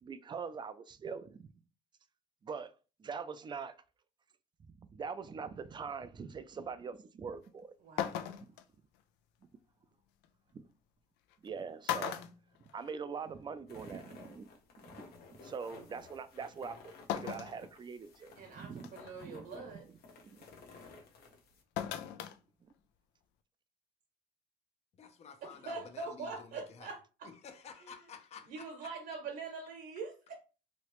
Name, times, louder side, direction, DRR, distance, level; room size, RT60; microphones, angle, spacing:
voice 1, 0.0-1.5 2.4-2.7 3.0-3.8 4.7-7.7 8.4-8.5 10.5-10.6 11.4-12.2 12.7-14.5 14.8-20.0 20.2-20.4 22.6-22.7, right 5 dB, 25° right, 0.3 m, -43 dB
sound 1, 7.4-7.5 8.0-8.6 10.2-10.3 11.3-11.5 11.8-13.2 13.6-13.7 14.9-15.0 17.1-17.6 18.1-18.2 18.8-19.1 21.8-22.4 22.7-22.8, left 10 dB, 85° left, 0.4 m, -37 dB
voice 2, 7.8-8.3 18.4-19.8 25.7-27.3 28.5-30.3, right 4 dB, 70° right, 1.0 m, -43 dB
sound 2, 13.7-21.6, left 4 dB, 65° left, 0.9 m, -55 dB
voice 3, 24.9-26.9 27.2-28.9, left 6 dB, 40° left, 0.6 m, -52 dB
3.1 x 2.8 x 3.0 m
cardioid pair, 110°, 17 cm